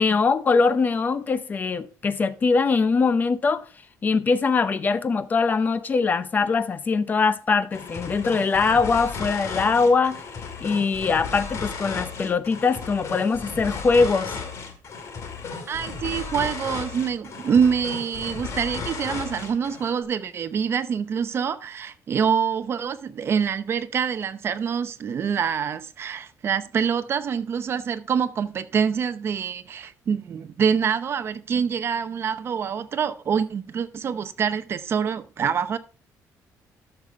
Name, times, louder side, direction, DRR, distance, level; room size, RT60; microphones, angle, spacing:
voice 1, 0.0-3.7 4.0-10.2 10.6-14.3, left 4 dB, 25° left, 0.6 m, -22 dB
sound 1, 7.7-19.9, left 5 dB, 50° left, 2.1 m, -35 dB
voice 2, 15.7-35.8, right 7 dB, 40° right, 0.7 m, -25 dB
12.5 x 6.7 x 3.5 m
cardioid pair, 155°, 6 cm